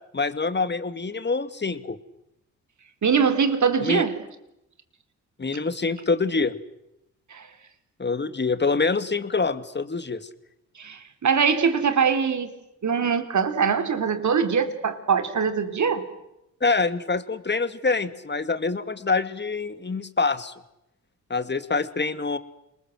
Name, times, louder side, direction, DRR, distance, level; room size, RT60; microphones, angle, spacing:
voice 1, 0.1-2.0 3.8-4.0 5.4-6.5 8.0-10.3 16.6-20.5 21.3-22.4, left 4 dB, 30° left, 2.3 m, -25 dB
voice 2, 3.0-4.1 7.3-7.5 10.8-12.5 12.8-16.1, right 6 dB, 50° right, 3.6 m, -22 dB
28.0 x 21.0 x 7.9 m
supercardioid pair, 55°, 37 cm